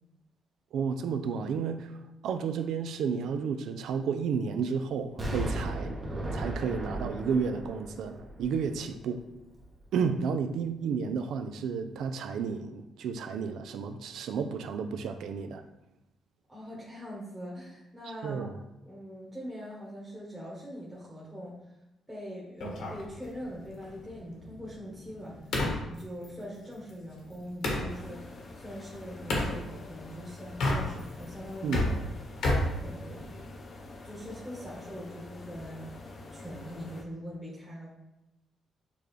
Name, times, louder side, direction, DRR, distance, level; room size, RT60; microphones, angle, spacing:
voice 1, 0.7-6.0 6.3-9.2 9.9-15.6 18.2-18.6 31.6-31.9, right 6 dB, 80° right, 9 dB, 0.4 m, -32 dB
Explosion, 5.2-9.1 9.6-9.7, right 1 dB, 35° right, 1.1 m, -36 dB
voice 2, 16.5-18.5 18.9-21.6 22.1-31.8 32.8-33.3 34.0-35.9 36.3-37.9, equal, 5° right, -6 dB, 1.2 m, -42 dB
sound 1, 22.6-27.9 29.3-29.6 30.5-31.2 31.5-33.5, left 1 dB, 70° left, 1.1 m, -32 dB
sound 2, 27.9-37.0, left 2 dB, 45° left, 0.6 m, -47 dB
6.8 x 2.3 x 3.2 m, 0.92 s
cardioid pair, 90°, 0 cm